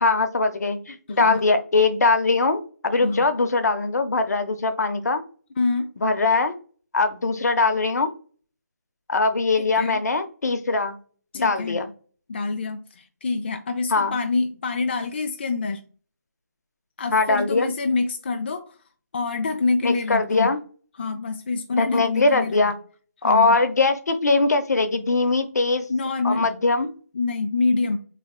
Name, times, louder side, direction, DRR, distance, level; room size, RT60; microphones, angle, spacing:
voice 1, 0.0-5.2 6.0-6.5 6.9-8.1 9.1-11.0 11.3-11.9 13.9-14.1 17.1-17.7 19.8-20.6 21.8-22.7 23.2-25.9 26.2-26.9, left 3 dB, 65° left, 9 dB, 0.7 m, -21 dB
voice 2, 1.1-1.4 3.0-3.3 5.6-5.9 9.6-10.0 11.3-11.8 12.3-15.8 17.0-18.8 19.1-20.5 21.0-22.6 23.2-23.6 25.9-26.5 27.1-28.0, left 3 dB, 35° left, 6 dB, 0.3 m, -26 dB
3.7 x 3.2 x 2.3 m, 0.41 s
figure-of-eight pair, 160°, 10 cm